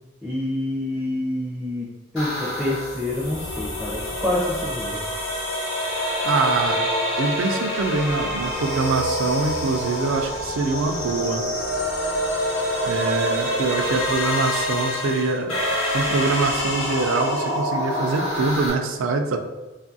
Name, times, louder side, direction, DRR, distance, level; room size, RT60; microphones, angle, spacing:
voice 1, 0.2-1.9 2.1-5.0, left 1 dB, ahead, -7 dB, 0.4 m, -27 dB
sound 1, 2.2-18.7, equal, 80° left, 1.0 m, -26 dB
voice 2, 6.2-6.9 7.2-11.5 12.8-15.6 15.9-19.4, right 3 dB, 80° right, 5 dB, 0.3 m, -24 dB
2.6 x 2.4 x 2.6 m, 1.2 s
head